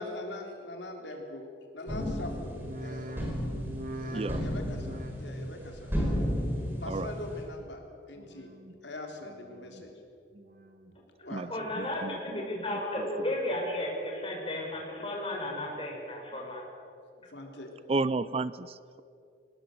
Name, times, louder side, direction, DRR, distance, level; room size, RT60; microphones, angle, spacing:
voice 1, 0.0-1.5 1.7-2.5 2.8-3.1 4.0-5.9 6.8-7.8 8.1-8.5 8.8-9.9 11.2-11.5 17.0-17.7, left 2 dB, 70° left, 2 dB, 3.7 m, -42 dB
sound 1, 1.9-7.4, equal, 10° right, 4.7 m, -34 dB
sound 2, 2.5-7.8 8.1-8.7 9.2-9.9 10.3-11.0 11.4-12.1 12.5-13.1 13.6-13.7, right 1 dB, 50° right, 2.3 m, -43 dB
voice 2, 4.1-4.4 6.8-7.2 11.3-13.1 17.9-19.0, right 3 dB, 30° right, 16 dB, 0.4 m, -33 dB
voice 3, 11.5-16.6, left 1 dB, 30° left, -1 dB, 5.6 m, -34 dB
23.0 x 19.0 x 7.8 m, 2.5 s
head